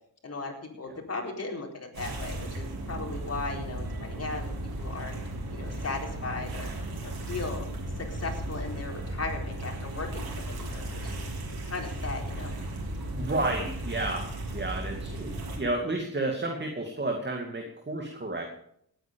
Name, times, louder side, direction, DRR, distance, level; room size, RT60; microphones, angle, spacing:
voice 1, 0.2-5.1 5.5-6.7 7.0-7.7 8.0-11.2 11.7-12.5, left 3 dB, 40° left, 0 dB, 4.2 m, -37 dB
sound 1, 1.9-15.6, right 1 dB, 70° right, 4.3 m, -35 dB
voice 2, 13.1-18.5, right 2 dB, 25° right, 2 dB, 2.4 m, -31 dB
18.5 x 9.5 x 5.3 m, 0.71 s
cardioid pair, 95°, 38 cm